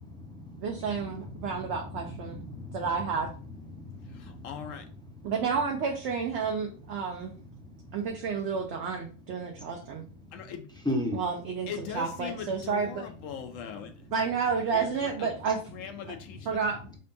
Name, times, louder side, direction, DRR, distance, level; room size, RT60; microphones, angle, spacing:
voice 1, 0.0-1.7 2.1-2.9 3.7-4.5 7.6-7.7 10.9-11.2, left 1 dB, 5° left, -1 dB, 0.4 m, -36 dB
voice 2, 0.6-2.4 2.7-3.3 5.2-7.4 7.9-10.0 11.1-11.7 11.9-13.0 14.1-15.6 16.5-16.9, right 5 dB, 65° right, 1 dB, 0.8 m, -30 dB
voice 3, 4.1-4.9 10.3-10.7 11.7-13.9 14.7-15.4 15.7-16.7, left 7 dB, 80° left, 6 dB, 1.0 m, -40 dB
5.1 x 2.2 x 2.6 m, 0.38 s
omnidirectional pair, 1.3 m